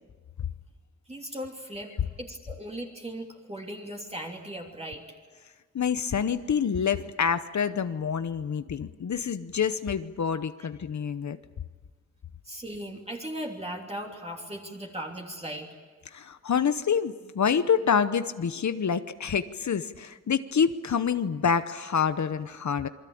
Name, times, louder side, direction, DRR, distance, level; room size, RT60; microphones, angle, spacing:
voice 1, 1.1-1.9 2.2-5.0 12.5-15.7, right 1 dB, 20° right, 0 dB, 3.0 m, -37 dB
voice 2, 5.7-11.4 16.1-22.9, left 7 dB, 70° left, 11 dB, 0.9 m, -27 dB
27.5 x 22.5 x 8.7 m, 1.4 s
wide cardioid pair, 135°, 30 cm